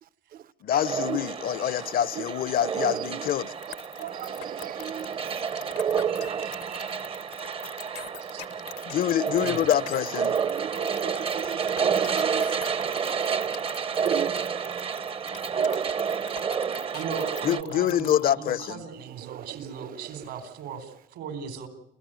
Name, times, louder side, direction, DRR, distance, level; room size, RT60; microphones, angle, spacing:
voice 1, 0.0-0.5 1.0-1.2 1.7-2.3 2.9-3.3 3.7-5.8 6.1-7.2 10.4-12.8 13.2-13.6 14.0-14.3 16.0-16.3 19.0-20.4, right 11 dB, 60° right, 1.0 m, -39 dB
voice 2, 0.6-3.5 8.9-10.3 17.4-18.8, left 11 dB, 60° left, 0.8 m, -26 dB
sound 1, 0.7-17.6, right 6 dB, 35° right, 0.8 m, -29 dB
sound 2, 3.6-18.3, left 15 dB, 85° left, 1.3 m, -43 dB
voice 3, 15.7-16.1 16.9-21.7, right 6 dB, 80° right, 4.4 m, -38 dB
28.5 x 15.0 x 9.1 m
cardioid pair, 110°, 17 cm